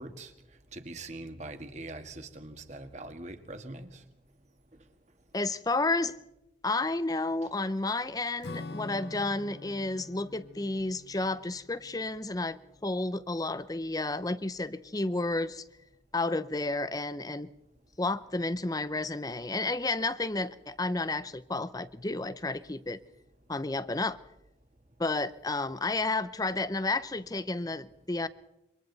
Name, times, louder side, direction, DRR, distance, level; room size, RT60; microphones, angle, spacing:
voice 1, 0.0-5.4 7.4-7.5 17.7-17.9 23.4-23.5 24.6-25.0, right 2 dB, 40° right, 1.8 m, -45 dB
voice 2, 5.3-6.2 6.6-15.6 16.1-17.5 18.0-23.0 23.5-24.2 25.0-28.3, left 2 dB, 20° left, 0.7 m, -31 dB
Acoustic guitar / Strum, 8.4-13.2, left 3 dB, 65° left, 0.9 m, -46 dB
27.5 x 25.0 x 4.1 m
head